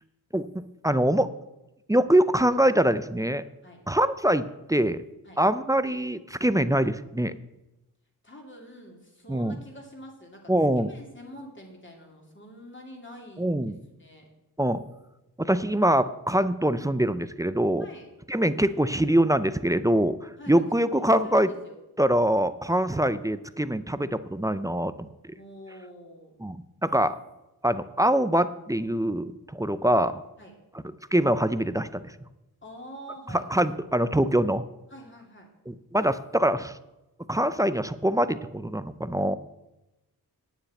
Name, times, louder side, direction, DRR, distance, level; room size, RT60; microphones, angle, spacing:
voice 1, 0.3-1.3 1.9-3.4 3.9-5.0 5.4-7.3 9.3-9.6 10.5-10.9 13.4-13.8 14.6-14.8 15.4-17.9 18.3-21.5 22.0-25.3 26.4-27.1 27.6-30.2 31.1-32.0 33.3-34.6 35.7-36.8 37.3-39.4, right 1 dB, 10° right, 13 dB, 0.4 m, -24 dB
voice 2, 8.2-10.5 10.9-13.5 13.9-14.3 17.8-18.1 20.4-21.8 25.3-26.4 30.4-30.5 32.6-33.4 34.9-35.5, equal, 30° left, 0 dB, 2.7 m, -46 dB
9.3 x 7.1 x 8.9 m, 0.98 s
wide cardioid pair, 135°, 40 cm